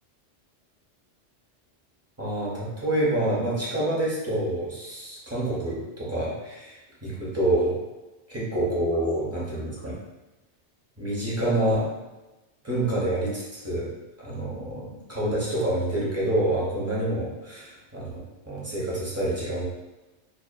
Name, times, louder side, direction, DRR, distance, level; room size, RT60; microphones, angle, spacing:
voice 1, 2.2-7.8 8.3-9.9 11.0-11.9 12.6-13.9 14.2-18.2 18.4-19.6, right 1 dB, 20° right, -7 dB, 0.5 m, -27 dB
2.6 x 2.4 x 2.3 m, 1.0 s
omnidirectional pair, 1.2 m